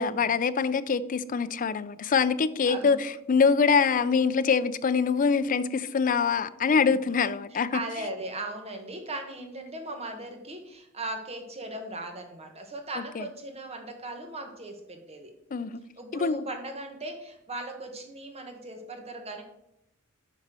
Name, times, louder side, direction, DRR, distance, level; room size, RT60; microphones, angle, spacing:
voice 1, 0.0-7.8 13.2-13.3 15.5-15.8 16.1-16.4, left 5 dB, 40° left, 0.4 m, -24 dB
voice 2, 2.7-3.0 7.5-15.3 16.0-19.4, right 2 dB, 30° right, 1.3 m, -38 dB
9.0 x 4.2 x 6.1 m
head